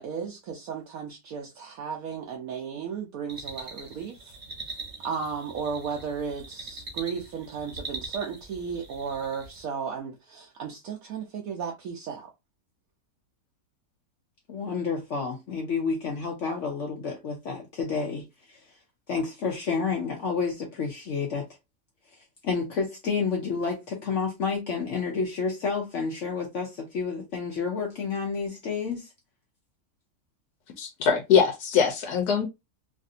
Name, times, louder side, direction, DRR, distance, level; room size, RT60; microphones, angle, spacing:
voice 1, 0.0-4.3 5.0-12.3, right 6 dB, 70° right, 1.0 m, -34 dB
sound 1, 3.3-9.7, right 3 dB, 35° right, 0.9 m, -42 dB
voice 2, 14.5-18.6 19.1-21.5 22.4-29.1, left 5 dB, 60° left, 0.9 m, -30 dB
voice 3, 30.8-32.4, left 7 dB, 80° left, 1.3 m, -22 dB
3.3 x 2.5 x 2.6 m
omnidirectional pair, 1.7 m